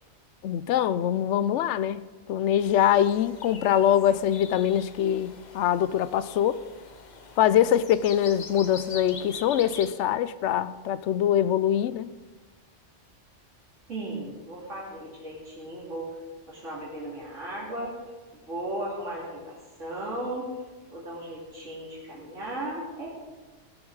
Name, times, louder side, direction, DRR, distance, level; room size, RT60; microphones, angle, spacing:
voice 1, 0.4-2.0 2.3-6.6 7.4-12.1, left 10 dB, 75° left, 15 dB, 0.9 m, -23 dB
sound 1, 2.6-9.9, left 5 dB, 40° left, 0.8 m, -44 dB
voice 2, 13.9-16.1 16.5-18.0 18.5-20.5 20.9-23.1, right 1 dB, 85° right, -5 dB, 3.1 m, -36 dB
18.0 x 7.1 x 4.8 m, 1.3 s
omnidirectional pair, 1.2 m